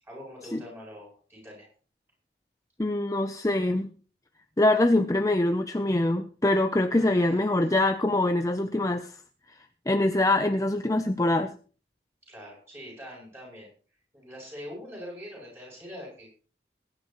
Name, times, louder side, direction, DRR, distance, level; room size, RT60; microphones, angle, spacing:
voice 1, 0.0-1.7 6.9-7.5 12.3-13.7 14.1-16.3, equal, 15° right, -2 dB, 7.9 m, -43 dB
voice 2, 2.8-3.9 4.6-9.2 9.5-11.6, left 1 dB, 15° left, 8 dB, 0.5 m, -24 dB
22.0 x 10.5 x 3.0 m, 0.40 s
head